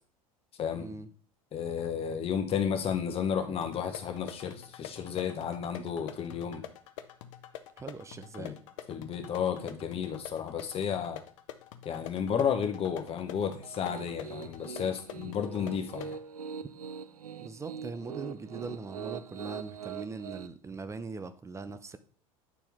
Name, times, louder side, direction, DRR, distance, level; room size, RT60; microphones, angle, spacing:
voice 1, 0.7-1.1 7.8-8.6 17.4-22.0, right 4 dB, 15° right, 11 dB, 0.6 m, -41 dB
voice 2, 1.5-6.6 8.4-8.5 8.9-11.2 11.8-16.1, left 7 dB, 35° left, 6 dB, 1.2 m, -32 dB
sound 1, 3.6-16.2, left 11 dB, 60° left, 0.7 m, -47 dB
Piano, 13.6-20.5, right 7 dB, 85° right, 0.4 m, -42 dB
9.0 x 4.4 x 3.6 m, 0.42 s
figure-of-eight pair, 75°, 18 cm